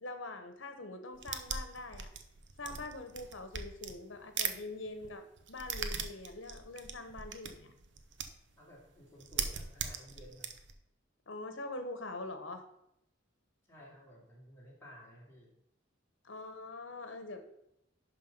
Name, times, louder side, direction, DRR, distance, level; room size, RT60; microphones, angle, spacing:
voice 1, 0.0-2.1 2.6-7.7 11.3-12.7 16.2-17.4, left 2 dB, 75° left, 8 dB, 1.1 m, -44 dB
sound 1, 1.1-4.6 4.9-8.5 8.8-8.9 9.2-10.7, right 7 dB, 65° right, 0.7 m, -39 dB
voice 2, 8.6-10.5 13.7-15.5, equal, 15° left, -5 dB, 2.7 m, -55 dB
11.0 x 3.8 x 5.4 m, 0.81 s
head